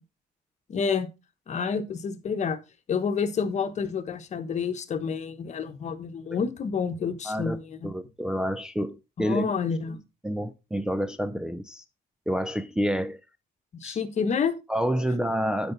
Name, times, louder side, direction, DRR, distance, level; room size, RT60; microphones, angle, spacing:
voice 1, 0.7-1.1 1.5-2.6 2.9-8.0 9.2-10.0 13.7-14.5, left 6 dB, 45° left, 1.2 m, -29 dB
voice 2, 7.2-7.6 7.8-9.5 10.2-11.8 12.3-13.2 13.8-14.0 14.7-15.7, equal, 5° right, 0.5 m, -28 dB
12.0 x 5.1 x 4.0 m
cardioid pair, 110°, 17 cm